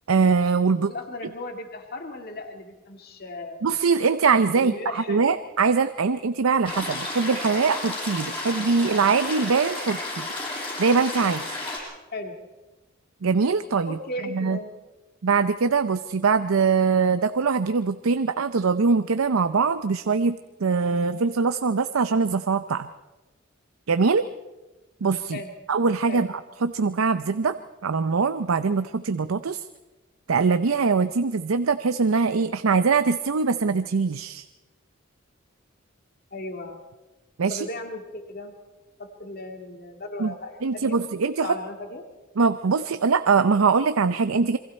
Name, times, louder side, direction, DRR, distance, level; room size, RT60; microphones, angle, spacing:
voice 1, 0.1-0.9 3.6-10.3 10.8-11.5 13.2-14.0 14.3-14.6 15.2-22.9 23.9-24.3 25.0-25.4 25.7-27.6 27.8-29.6 30.3-34.4 37.4-37.7 40.2-40.3 40.6-41.5 42.4-44.6, right 5 dB, 90° right, 11 dB, 0.6 m, -22 dB
voice 2, 0.7-3.6 4.6-5.3 12.1-12.4 13.8-14.7 25.3-25.5 26.1-26.3 36.3-36.8 37.5-38.5 39.0-41.0 41.4-42.0, left 2 dB, 50° left, 4 dB, 2.0 m, -36 dB
sound 1, 6.6-11.8, left 2 dB, 25° left, 6.4 m, -32 dB
28.0 x 22.5 x 4.4 m, 1.1 s
head